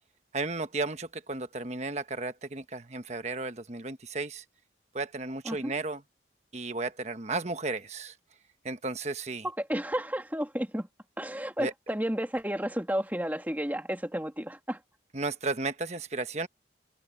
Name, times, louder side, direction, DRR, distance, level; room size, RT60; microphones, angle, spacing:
voice 1, 0.3-4.4 4.9-6.0 6.5-8.1 8.6-9.4 11.6-11.7 15.1-16.5, right 3 dB, 40° right, 1.3 m, -34 dB
voice 2, 9.4-10.9 11.2-14.8, equal, 10° right, 2.4 m, -32 dB
open air
head